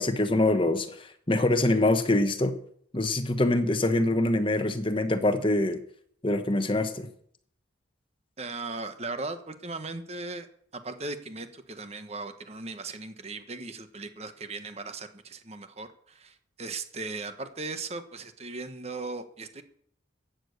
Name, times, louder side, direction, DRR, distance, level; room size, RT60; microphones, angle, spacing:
voice 1, 0.0-2.6 2.9-5.8 6.2-7.1, left 2 dB, 25° left, 8 dB, 1.2 m, -24 dB
voice 2, 8.4-10.5 10.7-19.6, right 3 dB, 35° right, 9 dB, 1.3 m, -38 dB
14.5 x 9.1 x 6.6 m, 0.62 s
head